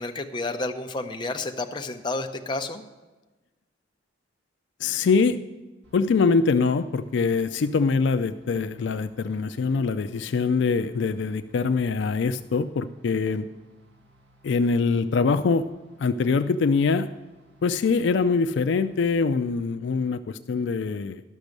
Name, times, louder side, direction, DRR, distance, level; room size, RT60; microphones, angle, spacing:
voice 1, 0.0-2.8, left 2 dB, 25° left, 4 dB, 0.6 m, -30 dB
voice 2, 4.8-5.4 5.9-13.5 14.4-15.7 16.0-17.1 17.6-21.2, left 4 dB, 65° left, 10 dB, 0.4 m, -23 dB
sound 1, 5.8-19.1, right 1 dB, 65° right, 1.7 m, -59 dB
12.0 x 6.1 x 6.5 m, 1.2 s
head